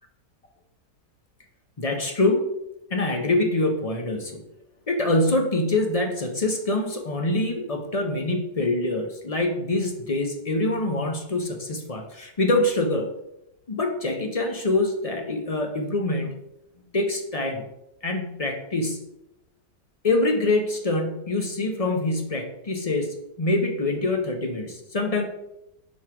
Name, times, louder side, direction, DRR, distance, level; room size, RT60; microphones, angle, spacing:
voice 1, 1.8-2.5 2.9-4.4 4.9-13.1 13.7-16.3 16.9-17.6 18.0-19.0 20.0-25.2, left 2 dB, 50° left, 3 dB, 0.4 m, -25 dB
6.3 x 4.6 x 4.7 m, 0.85 s
omnidirectional pair, 1.9 m